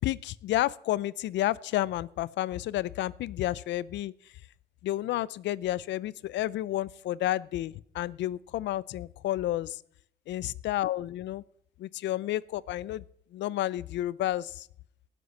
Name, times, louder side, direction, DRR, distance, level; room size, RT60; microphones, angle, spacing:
voice 1, 0.0-4.1 4.8-9.8 10.3-11.4 11.8-13.0 13.3-14.7, left 14 dB, 75° left, 22 dB, 0.6 m, -31 dB
18.5 x 8.2 x 5.5 m, 0.67 s
cardioid pair, 90°, 18 cm